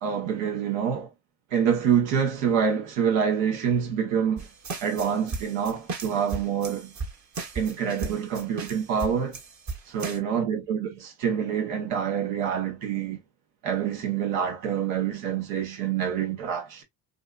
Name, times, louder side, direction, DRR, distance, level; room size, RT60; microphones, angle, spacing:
voice 1, 0.0-1.1 1.5-4.5 4.8-6.9 7.5-9.4 9.9-13.2 13.6-16.8, right 7 dB, 90° right, 1.0 m, -26 dB
sound 1, 4.4-10.2, right 4 dB, 35° right, 0.9 m, -36 dB
2.8 x 2.4 x 2.3 m
supercardioid pair, 70°, 47 cm